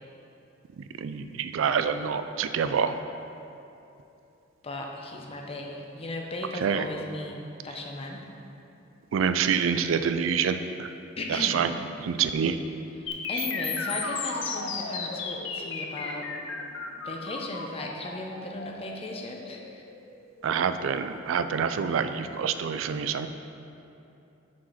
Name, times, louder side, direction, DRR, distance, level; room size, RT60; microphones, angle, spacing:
voice 1, 1.0-3.0 6.6-6.8 9.1-10.9 11.3-11.7 12.0-12.6 20.4-23.3, right 7 dB, 90° right, 9 dB, 0.4 m, -26 dB
voice 2, 4.6-8.3 11.2-11.7 12.9-16.3 17.0-19.8, left 1 dB, 30° left, 1 dB, 0.7 m, -37 dB
sound 1, 13.1-21.0, left 4 dB, 65° left, 0.7 m, -34 dB
6.2 x 4.9 x 5.6 m, 2.8 s
head